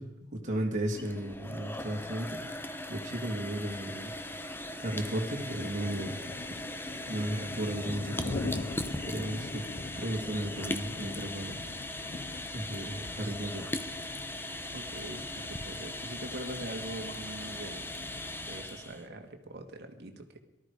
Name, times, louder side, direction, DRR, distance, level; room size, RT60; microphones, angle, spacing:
voice 1, 0.0-2.4 2.9-4.1 4.8-6.1 7.1-8.7 9.1-9.6 9.9-11.6 12.5-13.6, right 1 dB, 40° right, 0 dB, 2.7 m, -34 dB
sound 1, 0.8-19.0, left 1 dB, 10° left, 1.0 m, -39 dB
sound 2, 4.3-4.4 5.0-5.2 5.6-18.6, left 3 dB, 35° left, 0.5 m, -43 dB
voice 2, 14.7-17.9 18.5-20.4, right 1 dB, 55° right, 5 dB, 1.9 m, -43 dB
18.5 x 13.0 x 4.9 m, 1.0 s
head